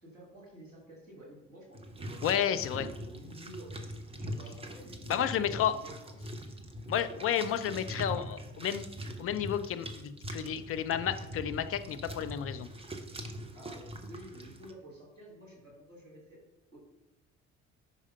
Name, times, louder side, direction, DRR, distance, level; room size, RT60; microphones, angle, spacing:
voice 1, 0.0-2.5 3.0-3.9 4.2-6.3 13.5-16.4 16.7-16.8, right 1 dB, 85° right, -5 dB, 2.0 m, -51 dB
sound 1, 1.7-14.7, equal, 15° right, 0.9 m, -42 dB
voice 2, 2.2-2.9 5.1-5.8 6.9-8.9 9.2-12.7, left 9 dB, 35° left, 11 dB, 0.5 m, -31 dB
5.3 x 4.8 x 5.4 m, 0.98 s
figure-of-eight pair, 50°, 37 cm